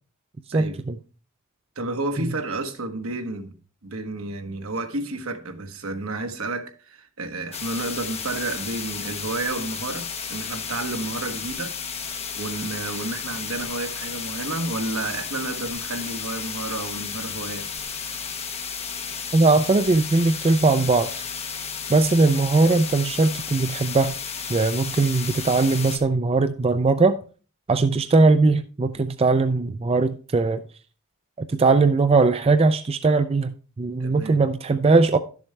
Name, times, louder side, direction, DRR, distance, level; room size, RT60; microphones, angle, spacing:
voice 1, 0.5-1.0 2.2-2.3 19.3-21.1 21.9-24.1 24.5-27.2 27.7-30.6 31.5-35.2, right 3 dB, 30° right, 0.4 m, -20 dB
voice 2, 1.8-3.6 3.8-11.8 12.1-17.7 34.0-34.5, right 2 dB, 70° right, 1.2 m, -31 dB
sound 1, 7.5-26.0, left 6 dB, 30° left, 1.1 m, -33 dB
12.0 x 7.2 x 3.3 m
head